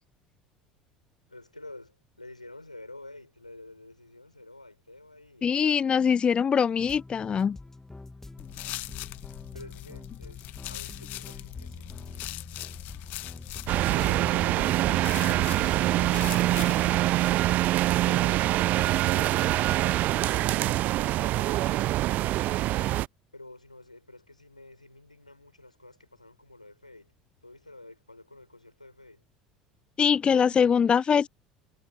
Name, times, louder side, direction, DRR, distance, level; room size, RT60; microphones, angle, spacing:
voice 1, 1.3-5.5 9.5-12.3 13.1-18.7 19.1-23.0 23.3-27.1 27.4-29.2, left 2 dB, 90° left, 5.0 m, -49 dB
voice 2, 5.4-7.6 30.0-31.3, left 7 dB, 25° left, 0.5 m, -23 dB
sound 1, 6.8-16.9, left 2 dB, 10° left, 1.2 m, -45 dB
sound 2, 8.4-17.0, left 18 dB, 50° left, 1.5 m, -41 dB
sound 3, 13.7-23.1, right 16 dB, 45° right, 0.4 m, -24 dB
figure-of-eight pair, 70°, 4 cm